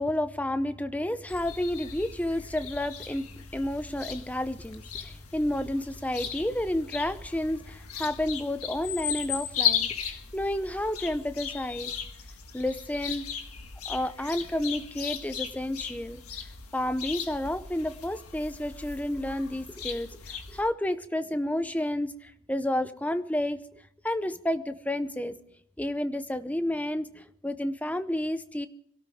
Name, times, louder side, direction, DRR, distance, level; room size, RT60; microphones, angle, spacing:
voice 1, 0.0-3.3 3.5-11.9 12.5-13.3 13.9-16.2 16.7-23.6 24.0-25.3 25.8-28.7, left 1 dB, 5° left, 11 dB, 0.6 m, -30 dB
sound 1, 1.3-20.6, left 8 dB, 85° left, 1.6 m, -36 dB
26.0 x 12.5 x 3.6 m, 0.69 s
head